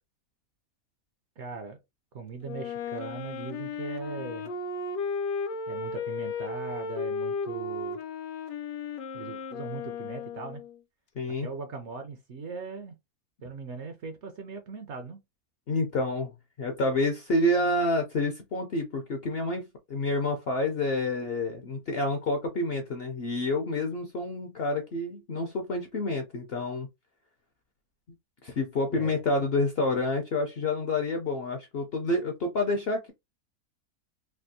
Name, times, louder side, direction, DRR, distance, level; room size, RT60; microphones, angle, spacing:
voice 1, 1.4-1.8 2.1-4.5 5.7-8.0 9.1-10.6 11.4-13.0 13.4-15.2 28.9-29.2, right 4 dB, 65° right, 0.7 m, -39 dB
Wind instrument woodwind instrument, 2.4-10.8, left 4 dB, 75° left, 1.1 m, -35 dB
voice 2, 11.2-11.5 15.7-16.3 16.6-26.9 28.4-33.1, left 2 dB, 60° left, 0.6 m, -28 dB
3.4 x 2.4 x 2.6 m
omnidirectional pair, 1.6 m